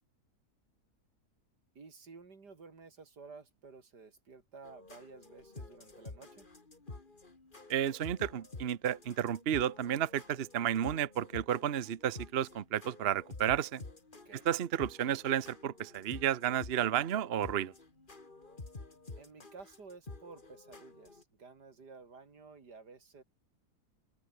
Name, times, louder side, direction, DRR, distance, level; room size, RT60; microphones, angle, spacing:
voice 1, 1.8-6.5 14.3-14.5 19.1-23.2, right 4 dB, 85° right, 3.6 m, -53 dB
sound 1, 4.6-21.2, left 3 dB, 30° left, 2.6 m, -50 dB
voice 2, 7.7-13.8 14.4-17.7, right 10 dB, 45° right, 0.9 m, -32 dB
open air
omnidirectional pair, 1.7 m